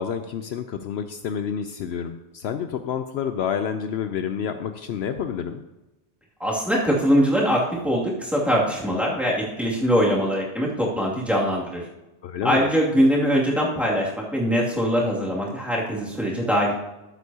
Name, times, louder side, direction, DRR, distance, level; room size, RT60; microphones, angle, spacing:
voice 1, 0.0-5.6 12.2-12.7, left 8 dB, 70° left, 8 dB, 0.8 m, -29 dB
voice 2, 6.4-11.8 12.4-16.7, equal, ahead, -5 dB, 2.3 m, -22 dB
13.5 x 8.2 x 2.8 m, 1.0 s
omnidirectional pair, 1.1 m